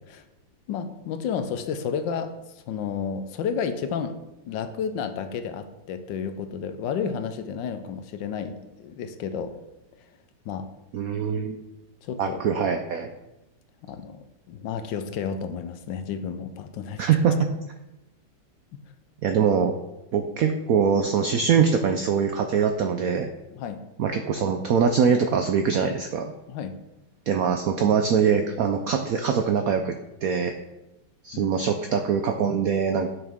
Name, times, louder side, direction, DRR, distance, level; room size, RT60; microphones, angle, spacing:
voice 1, 0.7-2.3 2.7-4.2 4.5-9.5 10.4-10.7 12.0-12.4 13.8-14.2 14.5-17.1 23.5-23.8 26.5-26.8 31.3-31.5, left 7 dB, 75° left, 9 dB, 1.3 m, -31 dB
voice 2, 10.9-11.6 12.2-13.1 17.0-17.5 19.2-19.7 20.1-23.3 24.0-26.3 27.3-30.5 31.2-33.1, right 6 dB, 90° right, 6 dB, 0.7 m, -23 dB
9.5 x 5.9 x 3.5 m, 0.95 s
omnidirectional pair, 2.1 m